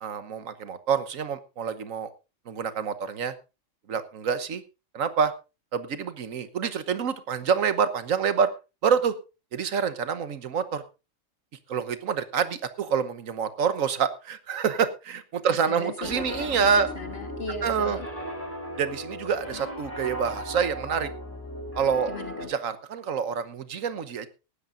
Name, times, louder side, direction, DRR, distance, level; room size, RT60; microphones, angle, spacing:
voice 1, 0.0-2.1 2.5-3.3 3.9-4.6 4.9-5.3 5.7-8.5 8.8-9.1 9.5-10.8 11.7-16.9 17.6-18.0 18.8-21.1 21.7-22.1 22.5-24.3, right 6 dB, 85° right, 12 dB, 1.4 m, -27 dB
voice 2, 15.5-18.1 19.5-19.6 22.1-22.5, left 2 dB, 50° left, 4 dB, 2.8 m, -38 dB
Piano, 16.0-22.5, equal, 10° left, 3.5 m, -37 dB
18.0 x 13.0 x 2.6 m, 0.29 s
omnidirectional pair, 1.3 m